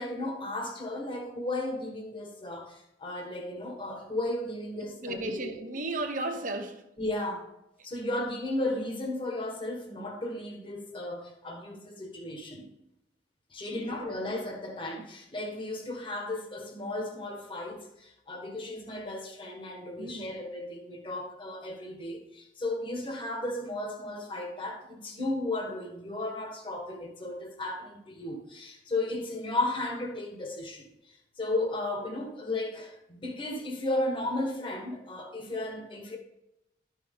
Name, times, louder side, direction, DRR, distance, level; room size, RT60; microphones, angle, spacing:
voice 1, 0.0-5.5 7.0-7.5 7.8-12.7 13.5-36.2, left 2 dB, 30° left, 1.6 m, -34 dB
voice 2, 4.8-6.8 13.7-14.1 20.0-20.4, right 2 dB, 45° right, 1.1 m, -35 dB
12.5 x 6.2 x 3.7 m
head